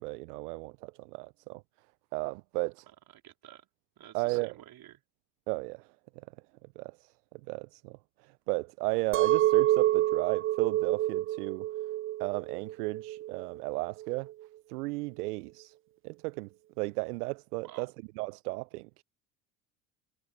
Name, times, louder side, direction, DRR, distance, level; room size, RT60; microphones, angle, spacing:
voice 1, 0.0-1.6 2.1-2.9 4.1-4.5 5.5-6.3 6.6-11.7 12.2-14.3 14.7-15.7 16.0-16.5 16.8-19.0, right 24 dB, 80° right, 0.6 m, -35 dB
voice 2, 3.1-3.7 4.0-5.0 17.6-17.9, right 13 dB, 50° right, 4.0 m, -51 dB
Chink clink, 9.1-14.3, right 14 dB, 30° right, 0.5 m, -28 dB
hypercardioid pair, 75°, 45 cm